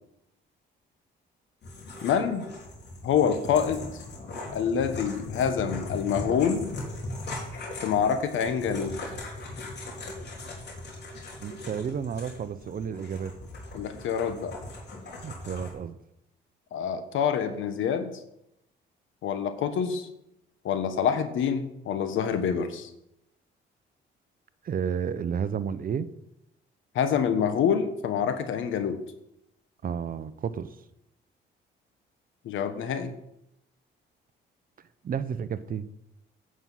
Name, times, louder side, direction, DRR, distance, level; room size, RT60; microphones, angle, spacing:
sound 1, 1.6-15.7, left 2 dB, 60° left, 3.8 m, -39 dB
voice 1, 2.0-2.4 3.0-3.9 4.5-6.7 7.8-9.0 13.7-14.6 16.7-18.1 19.2-20.1 20.6-22.9 26.9-29.0 32.4-33.1, left 7 dB, 80° left, 9 dB, 1.3 m, -26 dB
voice 2, 11.4-13.3 15.2-16.0 24.6-26.1 29.8-30.8 35.0-35.9, right 7 dB, 45° right, 14 dB, 0.7 m, -31 dB
9.7 x 6.2 x 7.6 m, 0.82 s
cardioid pair, 90°, 20 cm